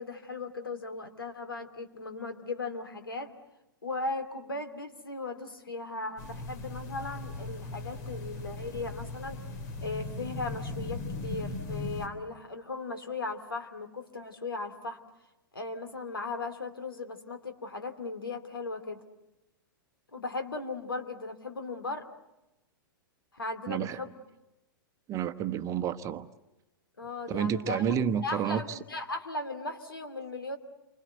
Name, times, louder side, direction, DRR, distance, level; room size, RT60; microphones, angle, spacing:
voice 1, 0.0-3.3 3.8-9.4 9.8-15.0 15.5-19.0 20.1-22.1 23.3-24.1 27.0-27.8 28.2-30.6, left 3 dB, 80° left, 2.7 m, -37 dB
sound 1, 6.2-12.1, left 2 dB, 50° left, 3.9 m, -38 dB
voice 2, 23.7-24.0 25.1-26.3 27.3-28.8, right 8 dB, 25° right, 1.1 m, -30 dB
29.0 x 25.0 x 8.0 m
figure-of-eight pair, 105°, 12 cm